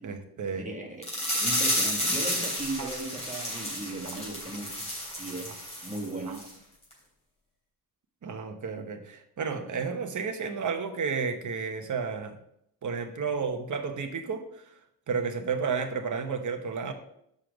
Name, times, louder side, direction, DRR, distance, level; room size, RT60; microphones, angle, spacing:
voice 1, 0.0-0.7 2.8-2.9 6.2-6.4 8.2-12.4 12.8-14.6 15.1-16.9, right 5 dB, 50° right, 6 dB, 1.0 m, -32 dB
voice 2, 0.6-4.9 5.2-6.4, right 2 dB, 20° right, 1 dB, 1.4 m, -37 dB
sound 1, 1.0-6.1 6.3-6.5 6.9-7.0, left 1 dB, 15° left, 3.4 m, -31 dB
6.5 x 5.6 x 5.1 m, 0.74 s
wide cardioid pair, 130°, 38 cm